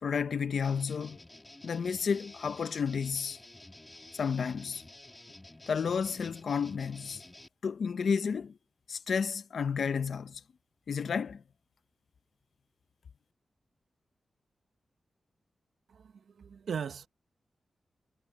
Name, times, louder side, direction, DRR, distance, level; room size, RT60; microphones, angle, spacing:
voice 1, 0.0-1.2 1.6-3.4 4.2-4.8 5.7-7.2 7.6-8.5 8.9-10.4 10.9-11.4, left 6 dB, 75° left, 0.8 m, -31 dB
sound 1, 0.6-7.5, left 1 dB, 15° left, 2.3 m, -52 dB
voice 2, 15.9-17.1, right 7 dB, 90° right, 1.0 m, -38 dB
wide cardioid pair, 90°, 0 cm